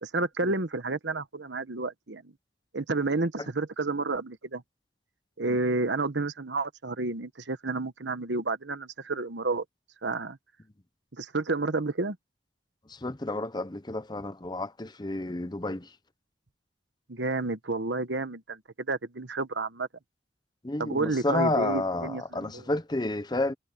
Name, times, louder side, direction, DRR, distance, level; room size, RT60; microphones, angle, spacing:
voice 1, 0.0-2.3 2.7-4.6 5.4-9.6 10.0-10.4 11.1-12.2 17.1-19.9 20.8-22.6, right 3 dB, 75° right, 1.2 m, -30 dB
voice 2, 12.9-15.9 20.6-23.5, left 2 dB, 25° left, 0.8 m, -30 dB
head